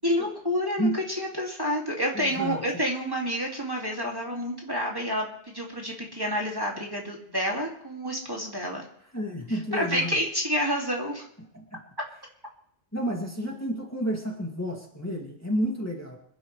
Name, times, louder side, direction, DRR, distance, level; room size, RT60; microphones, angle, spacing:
voice 1, 0.0-8.8 9.7-11.2, equal, 20° right, -2 dB, 2.5 m, -29 dB
voice 2, 2.1-2.6 9.1-10.2 11.5-11.8 12.9-16.2, equal, 15° left, -1 dB, 2.3 m, -30 dB
27.0 x 11.5 x 3.3 m, 0.68 s
omnidirectional pair, 1.1 m